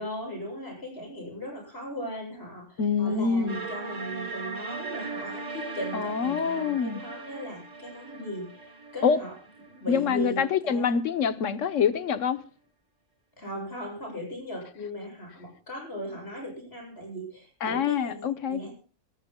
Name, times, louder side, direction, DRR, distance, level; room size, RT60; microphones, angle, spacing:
voice 1, 0.0-9.3 9.7-10.9 13.4-18.7, equal, 55° left, 8.1 m, -38 dB
voice 2, 2.8-3.6 5.9-7.0 9.0-9.2 9.9-12.4 17.6-18.6, left 6 dB, 90° left, 1.3 m, -25 dB
sound 1, 3.5-10.4, right 3 dB, 85° right, 1.9 m, -38 dB
28.0 x 14.0 x 2.2 m
omnidirectional pair, 1.3 m